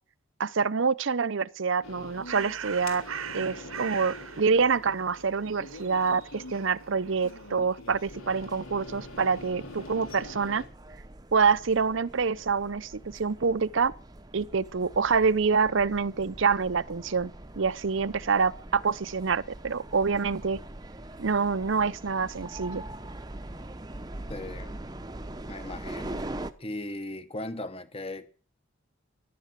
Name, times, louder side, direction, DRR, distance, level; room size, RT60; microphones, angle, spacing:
voice 1, 0.4-3.0 3.3-10.6 11.3-13.9 14.3-20.6 21.2-22.8, right 5 dB, 65° right, 0.7 m, -26 dB
Bird, 1.7-7.8, right 7 dB, 80° right, 1.0 m, -42 dB
sound 1, 1.8-10.7, left 2 dB, 80° left, 3.5 m, -45 dB
sound 2, 7.9-26.5, right 1 dB, 20° right, 0.8 m, -43 dB
voice 2, 24.3-24.8 25.5-26.2 26.6-28.3, left 1 dB, 25° left, 1.1 m, -37 dB
14.0 x 12.0 x 7.5 m
head